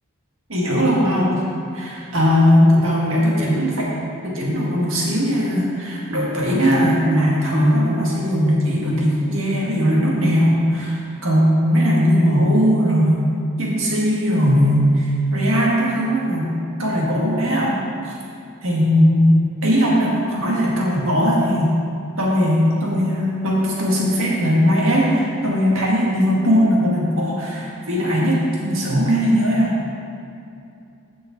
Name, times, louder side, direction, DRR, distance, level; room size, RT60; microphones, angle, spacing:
voice 1, 0.5-1.4 1.7-3.9 4.2-13.2 13.6-16.5 16.8-18.2 18.6-19.3 19.6-21.7 22.2-29.7, equal, 70° right, -4 dB, 1.9 m, -19 dB
7.6 x 5.2 x 7.2 m, 2.6 s
head